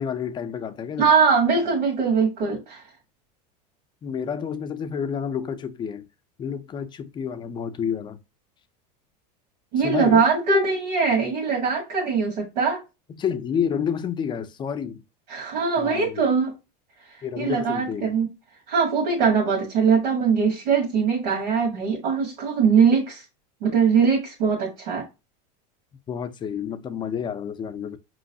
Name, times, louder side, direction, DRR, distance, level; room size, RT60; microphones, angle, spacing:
voice 1, 0.0-1.1 4.0-6.0 6.4-8.2 9.8-10.3 13.2-15.0 15.8-16.3 17.2-18.1 26.1-28.0, left 7 dB, 20° left, 0.4 m, -29 dB
voice 2, 1.0-2.8 9.7-12.8 15.3-16.5 17.1-18.3 18.7-23.2 23.6-25.0, right 5 dB, 80° right, 1.5 m, -21 dB
5.0 x 3.1 x 2.6 m
supercardioid pair, 130°, 21 cm